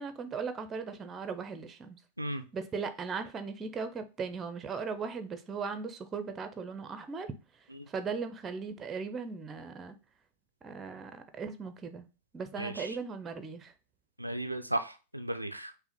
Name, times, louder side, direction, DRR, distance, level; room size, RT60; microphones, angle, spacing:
voice 1, 0.0-2.0 2.3-7.3 7.9-10.0 10.6-12.1 12.3-13.7, right 5 dB, 20° right, 0.6 m, -38 dB
voice 2, 12.6-12.9 14.2-15.7, right 1 dB, 85° right, 0.3 m, -35 dB
5.4 x 2.1 x 4.4 m
figure-of-eight pair, 90°, 0 cm